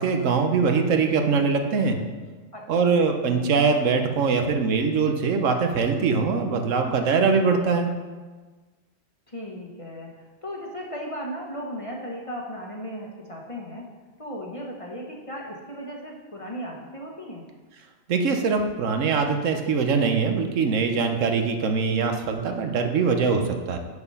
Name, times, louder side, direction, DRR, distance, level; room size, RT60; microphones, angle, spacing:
voice 1, 0.0-2.0 2.7-7.9 18.1-23.8, right 5 dB, 90° right, 5 dB, 1.2 m, -22 dB
voice 2, 2.5-3.1 9.3-13.9 14.2-17.4, equal, 30° left, -1 dB, 1.1 m, -36 dB
6.9 x 6.5 x 5.4 m, 1.3 s
omnidirectional pair, 1.3 m